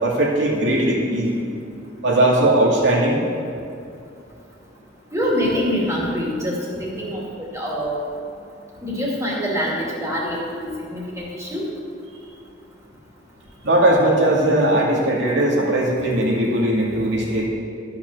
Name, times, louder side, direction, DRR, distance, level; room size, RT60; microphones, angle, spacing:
voice 1, 0.0-1.3 2.0-3.2 13.6-17.5, right 1 dB, 80° right, -3 dB, 2.4 m, -19 dB
voice 2, 5.1-7.2 7.5-8.0 8.8-11.6, equal, 15° right, -5 dB, 2.5 m, -25 dB
13.0 x 5.9 x 6.7 m, 2.5 s
head